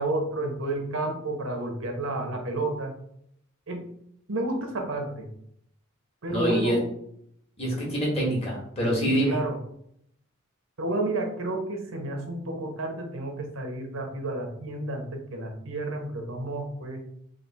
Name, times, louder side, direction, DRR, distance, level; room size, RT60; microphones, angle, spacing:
voice 1, 0.0-2.9 3.7-3.9 4.3-5.3 6.2-6.8 9.1-9.6 10.8-17.1, right 2 dB, 90° right, 3 dB, 0.9 m, -31 dB
voice 2, 6.3-6.8 7.6-9.4, equal, 30° left, -3 dB, 1.4 m, -25 dB
3.3 x 2.6 x 4.1 m, 0.70 s
head